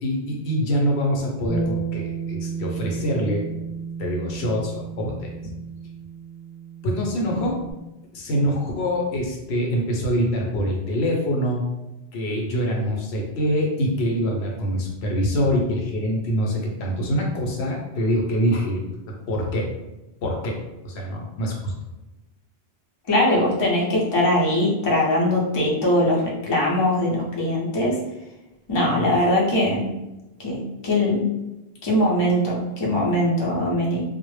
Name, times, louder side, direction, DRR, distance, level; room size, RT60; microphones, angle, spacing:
voice 1, 0.0-3.5 4.0-5.3 6.8-7.6 8.1-11.6 12.1-18.8 19.3-19.7 20.2-21.7, equal, 75° left, 0 dB, 0.8 m, -24 dB
Bass guitar, 1.5-7.7, right 5 dB, 10° left, 0.8 m, -32 dB
voice 2, 23.1-28.0 28.7-29.9 30.4-31.3 31.8-34.0, left 1 dB, 35° left, -4 dB, 0.4 m, -21 dB
2.0 x 2.0 x 3.1 m, 0.98 s
omnidirectional pair, 1.1 m